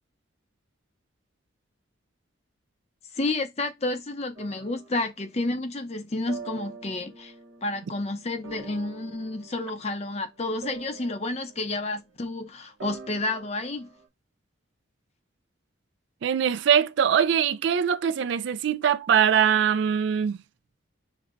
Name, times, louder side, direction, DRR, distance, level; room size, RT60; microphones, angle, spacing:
voice 1, 3.1-7.3 7.6-13.9, left 2 dB, 35° left, 0.5 m, -30 dB
sound 1, 4.4-5.1 6.3-12.4 12.8-14.1, right 5 dB, 80° right, 0.9 m, -45 dB
voice 2, 16.2-20.4, right 8 dB, 65° right, 0.3 m, -22 dB
5.2 x 2.1 x 2.5 m
head